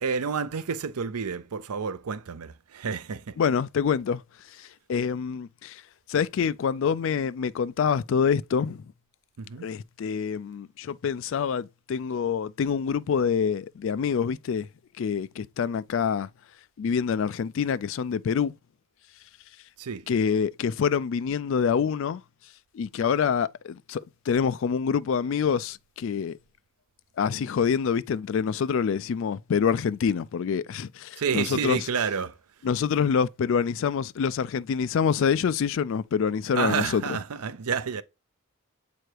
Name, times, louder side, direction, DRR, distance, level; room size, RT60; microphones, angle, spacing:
voice 1, 0.0-3.4 9.4-9.7 19.8-20.1 31.2-32.4 36.6-38.0, right 6 dB, 90° right, 0.6 m, -29 dB
voice 2, 3.4-4.2 4.6-5.8 6.1-8.8 9.6-14.7 15.0-16.3 16.8-18.5 20.1-22.2 22.7-26.4 27.2-31.8 32.6-37.0, left 6 dB, 55° left, 0.3 m, -26 dB
7.6 x 3.1 x 4.6 m
head